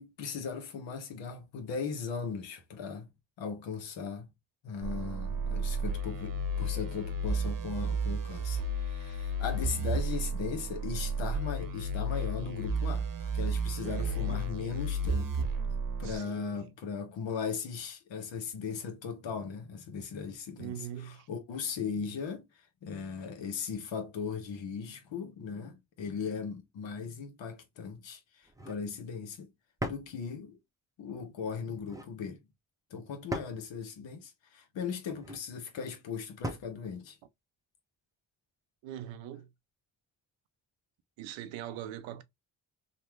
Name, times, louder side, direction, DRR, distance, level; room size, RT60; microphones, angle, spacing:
voice 1, 0.0-3.1 3.4-4.3 4.6-15.5 16.0-20.8 21.0-22.4 22.8-29.5 29.9-30.6 31.0-32.4 32.9-37.1, left 6 dB, 75° left, 0.9 m, -38 dB
sound 1, 4.8-16.2, right 2 dB, 45° right, 0.8 m, -32 dB
voice 2, 13.8-14.5 16.0-16.7 20.6-21.3 38.8-39.5 41.2-42.2, right 11 dB, 85° right, 0.5 m, -42 dB
sound 2, 28.4-28.8 29.8-30.1 31.7-32.1 33.3-33.7 35.1-35.5 36.4-36.8, right 1 dB, 10° right, 0.7 m, -38 dB
3.2 x 2.1 x 2.9 m
supercardioid pair, 40°, 45 cm